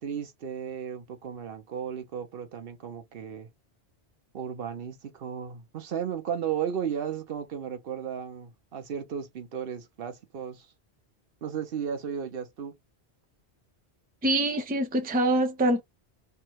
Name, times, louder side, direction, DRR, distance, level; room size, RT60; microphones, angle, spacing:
voice 1, 0.0-3.5 4.3-10.7 11.4-12.7, right 8 dB, 60° right, 0.8 m, -34 dB
voice 2, 14.2-15.8, right 1 dB, 10° right, 0.5 m, -24 dB
3.4 x 2.1 x 3.0 m
omnidirectional pair, 1.1 m